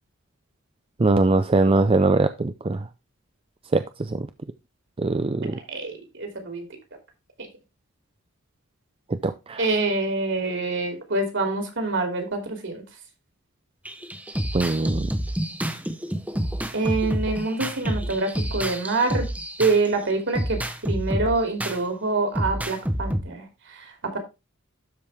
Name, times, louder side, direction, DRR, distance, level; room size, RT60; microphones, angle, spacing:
voice 1, 1.0-2.9 3.7-4.3 5.0-5.6 9.2-9.7 14.5-15.1, right 2 dB, 25° right, 0.4 m, -22 dB
voice 2, 6.2-6.6 7.4-7.5 9.6-12.8 16.7-19.2 19.6-23.4 24.1-24.2, right 3 dB, 60° right, 2.9 m, -25 dB
sound 1, 13.8-19.9 20.3-21.8 22.3-23.2, equal, 5° right, 0.9 m, -28 dB
12.5 x 5.0 x 3.5 m
head